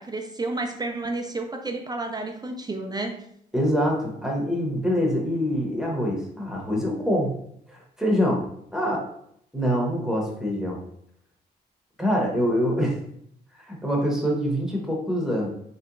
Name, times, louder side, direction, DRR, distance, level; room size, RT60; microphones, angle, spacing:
voice 1, 0.0-3.2, right 2 dB, 20° right, 3 dB, 0.4 m, -31 dB
voice 2, 3.5-7.4 7.7-8.4 8.7-9.1 9.5-10.8 12.0-13.0 13.6-15.5, equal, 5° right, -2 dB, 0.9 m, -25 dB
3.2 x 2.9 x 2.5 m, 0.71 s
cardioid pair, 75°, 18 cm